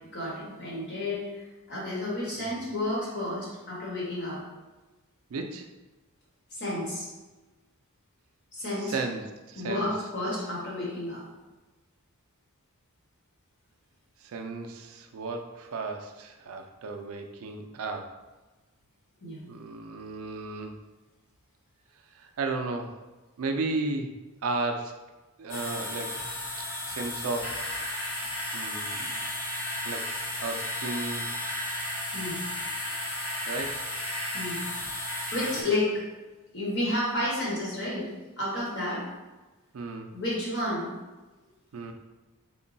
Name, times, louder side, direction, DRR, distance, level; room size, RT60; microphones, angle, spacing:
voice 1, 0.1-1.2 1.7-4.4 6.5-7.1 8.5-9.0 9.5-11.2 19.2-19.4 32.1-32.4 34.3-34.6 35.3-36.0 36.5-38.1 38.4-39.0 40.1-40.9, left 1 dB, 50° left, -6 dB, 1.4 m, -31 dB
voice 2, 5.3-5.7 8.8-9.9 14.2-18.1 19.5-20.8 22.1-22.9 23.4-24.1 24.4-25.0 25.4-26.1 26.9-28.0 28.5-29.1 29.8-30.1 30.4-31.3 33.5-33.8 39.7-40.1 41.7-41.9, right 3 dB, 70° right, 4 dB, 0.4 m, -34 dB
sound 1, 25.5-35.6, left 1 dB, 75° left, 1.1 m, -34 dB
3.6 x 2.2 x 3.9 m, 1.2 s
head